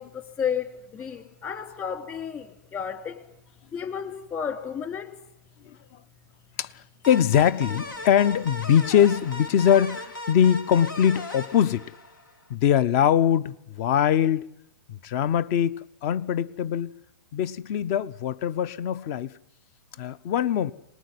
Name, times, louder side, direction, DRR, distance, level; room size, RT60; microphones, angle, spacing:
voice 1, 0.0-3.3 3.7-5.1, left 7 dB, 25° left, 2.8 m, -32 dB
voice 2, 6.6-11.9 12.5-14.5 14.9-15.7 16.0-16.9 17.3-19.3 20.0-20.7, left 9 dB, 45° left, 0.9 m, -22 dB
sound 1, 7.0-12.5, left 2 dB, 85° left, 3.0 m, -38 dB
24.0 x 20.0 x 9.7 m
hypercardioid pair, 135°, 10 cm